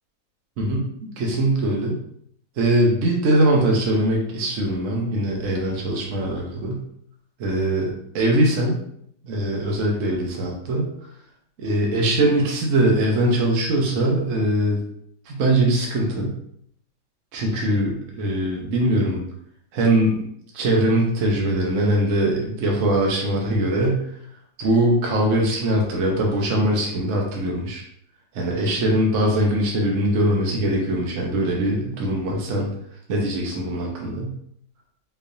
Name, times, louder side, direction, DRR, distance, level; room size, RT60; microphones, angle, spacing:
voice 1, 1.2-1.9 2.6-6.8 7.4-8.8 9.2-10.9 11.6-14.8 15.3-16.3 17.3-19.2 19.7-20.2 20.5-24.1 24.6-27.8 28.3-32.7 33.1-34.3, right 1 dB, 60° right, -1 dB, 0.8 m, -21 dB
3.8 x 3.2 x 2.6 m, 0.68 s
omnidirectional pair, 2.0 m